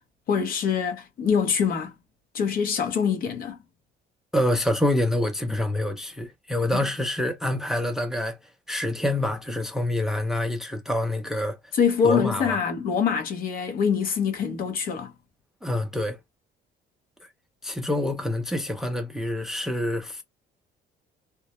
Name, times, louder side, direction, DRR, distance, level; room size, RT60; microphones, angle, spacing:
voice 1, 0.3-1.9 2.3-3.6 11.7-15.1, left 6 dB, 55° left, 0.7 m, -24 dB
voice 2, 4.3-8.4 8.7-11.6 12.0-12.6 15.6-16.2 17.6-20.2, left 1 dB, ahead, 0.4 m, -26 dB
2.2 x 2.0 x 2.9 m
cardioid pair, 155°, 18 cm